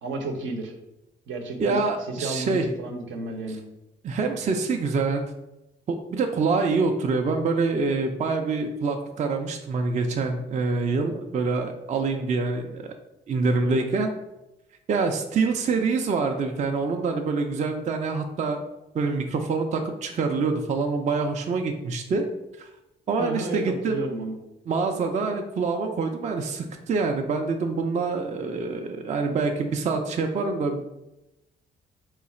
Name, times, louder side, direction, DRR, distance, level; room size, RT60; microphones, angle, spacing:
voice 1, 0.0-0.7 1.3-3.6 13.6-13.9 23.2-24.3, right 2 dB, 75° right, 4 dB, 0.7 m, -32 dB
voice 2, 1.6-2.6 4.0-5.2 5.9-12.8 13.3-14.1 14.9-18.6 18.9-22.3 22.6-22.7 23.1-24.0 24.7-30.9, right 4 dB, 35° right, 4 dB, 0.4 m, -26 dB
3.8 x 2.4 x 4.2 m, 0.95 s
cardioid pair, 90°, 20 cm